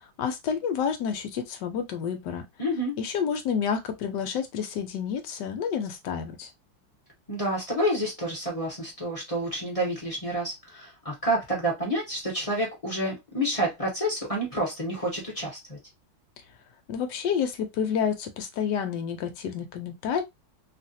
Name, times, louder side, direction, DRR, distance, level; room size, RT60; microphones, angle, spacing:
voice 1, 0.2-2.4 3.0-6.5 16.9-20.2, left 7 dB, 70° left, 1.1 m, -29 dB
voice 2, 2.6-2.9 7.3-15.8, right 1 dB, 35° left, 0.6 m, -29 dB
3.2 x 2.4 x 2.6 m
omnidirectional pair, 2.2 m